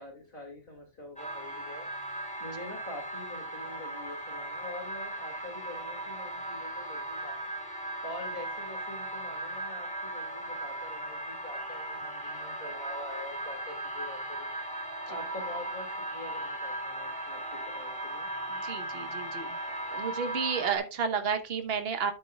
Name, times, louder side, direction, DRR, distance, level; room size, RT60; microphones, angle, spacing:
voice 1, 0.0-1.9 2.4-18.3, left 2 dB, 40° left, -2 dB, 2.6 m, -45 dB
sound 1, 1.2-20.8, right 1 dB, 5° left, 2.3 m, -37 dB
voice 2, 18.6-19.6 19.9-22.1, right 6 dB, 50° right, 6 dB, 1.3 m, -31 dB
12.5 x 6.8 x 2.3 m, 0.29 s
omnidirectional pair, 1.4 m